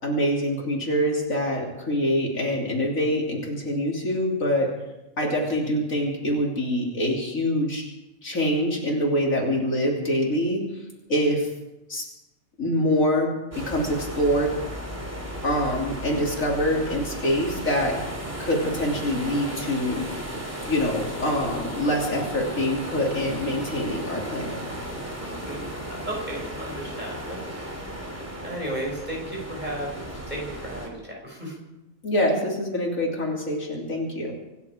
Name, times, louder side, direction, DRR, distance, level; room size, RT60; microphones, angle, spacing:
voice 1, 0.0-4.8 5.2-7.9 8.2-11.5 11.9-12.0 12.6-14.6 15.4-18.1 18.4-20.1 20.7-24.6 32.0-34.3, equal, 70° left, -2 dB, 3.4 m, -25 dB
sound 1, 13.5-30.9, equal, 10° right, 3.1 m, -35 dB
voice 2, 25.2-25.6 25.9-27.8 28.4-31.5, right 1 dB, 30° right, -2 dB, 6.5 m, -34 dB
26.0 x 11.0 x 5.0 m, 0.98 s
omnidirectional pair, 1.5 m